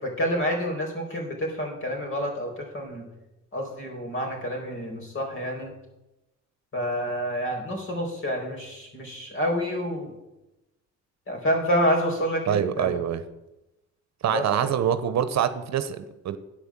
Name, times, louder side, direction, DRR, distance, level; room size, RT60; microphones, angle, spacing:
voice 1, 0.0-3.0 3.5-5.7 6.7-10.1 11.3-13.0 14.3-14.7, equal, 45° left, 1 dB, 4.5 m, -28 dB
voice 2, 12.5-13.2 14.2-16.4, right 9 dB, 65° right, 12 dB, 0.9 m, -25 dB
10.5 x 8.2 x 7.4 m, 0.97 s
cardioid pair, 90°, 30 cm